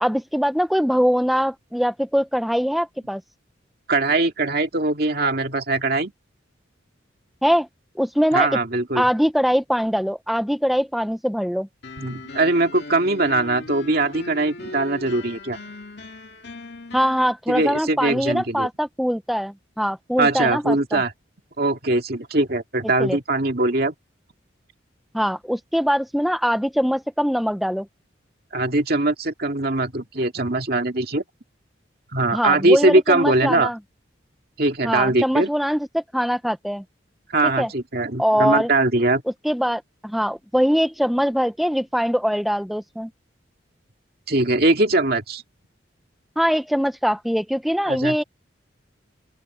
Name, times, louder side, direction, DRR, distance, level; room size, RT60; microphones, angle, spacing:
voice 1, 0.0-3.2 7.4-7.7 8.0-8.5 9.0-11.7 16.9-21.0 23.0-23.2 25.1-27.9 32.3-33.8 34.8-36.8 37.6-37.7 38.2-38.7 39.4-43.1 46.4-48.2, equal, ahead, 0.6 m, -22 dB
voice 2, 3.9-6.1 8.3-9.1 12.0-15.6 17.5-18.7 20.2-21.1 21.6-23.9 28.5-31.2 32.1-33.7 34.6-35.5 37.3-39.2 44.3-45.4 47.9-48.2, right 2 dB, 50° right, 2.4 m, -21 dB
sound 1, 11.8-17.3, left 2 dB, 60° left, 2.2 m, -38 dB
open air
head